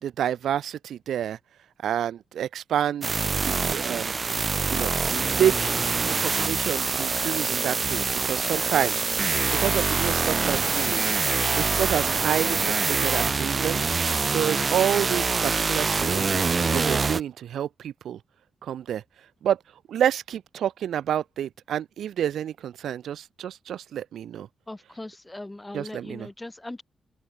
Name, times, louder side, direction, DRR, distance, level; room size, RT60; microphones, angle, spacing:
voice 1, 0.0-1.4 1.8-3.1 3.4-4.1 4.7-4.9 5.3-5.7 6.2-9.0 9.5-11.1 11.5-13.8 14.3-16.3 16.7-18.2 18.6-19.0 19.4-19.6 19.9-24.5 25.7-26.3, right 10 dB, 85° right, 5.6 m, -28 dB
sound 1, 3.0-17.2, right 4 dB, 30° right, 2.2 m, -25 dB
voice 2, 24.7-26.8, left 2 dB, 10° left, 5.3 m, -39 dB
open air
wide cardioid pair, 150°, 0 cm